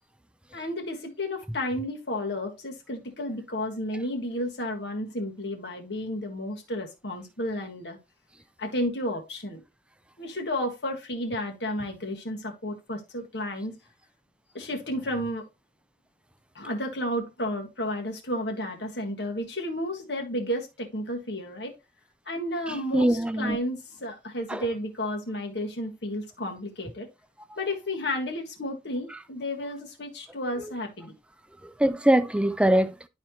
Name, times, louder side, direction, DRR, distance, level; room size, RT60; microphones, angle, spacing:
voice 1, 0.5-8.0 8.6-9.6 10.2-13.8 14.5-15.5 16.5-21.7 22.2-27.1 27.6-31.1, left 1 dB, 75° left, 1.6 m, -32 dB
voice 2, 22.7-23.6 24.5-24.6 31.8-33.0, right 1 dB, 5° right, 0.4 m, -22 dB
11.0 x 4.3 x 2.9 m
head